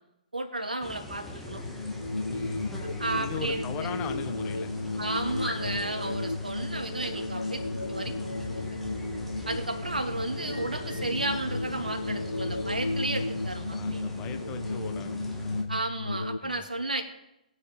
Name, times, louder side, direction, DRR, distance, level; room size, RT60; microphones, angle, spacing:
voice 1, 0.3-1.6 3.0-3.7 5.0-8.3 8.6-8.8 9.5-14.0 15.7-17.0, right 2 dB, 75° right, 4 dB, 2.3 m, -33 dB
sound 1, 0.8-15.6, left 1 dB, 5° left, 2.1 m, -42 dB
sound 2, 1.6-16.4, left 2 dB, 85° left, 0.4 m, -33 dB
voice 2, 2.3-6.2 9.0-9.2 13.6-15.9 16.4-16.6, left 8 dB, 20° left, 8 dB, 1.1 m, -41 dB
19.5 x 9.9 x 3.8 m, 0.89 s
figure-of-eight pair, 125°, 5 cm